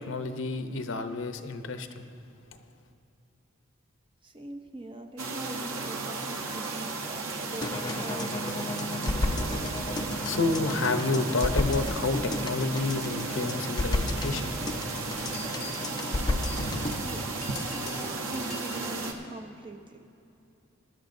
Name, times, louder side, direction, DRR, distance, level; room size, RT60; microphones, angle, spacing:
voice 1, 0.0-2.0 10.2-14.5, left 3 dB, 65° left, 8 dB, 0.7 m, -30 dB
voice 2, 4.2-8.9 17.0-20.1, right 1 dB, 25° right, 4 dB, 0.6 m, -43 dB
sound 1, 5.2-19.1, right 3 dB, 85° right, 1.0 m, -35 dB
sound 2, 7.6-17.0, left 1 dB, 20° left, 0.4 m, -32 dB
sound 3, 15.2-19.0, left 2 dB, 40° left, 3.1 m, -43 dB
19.0 x 11.5 x 2.6 m, 2.7 s
head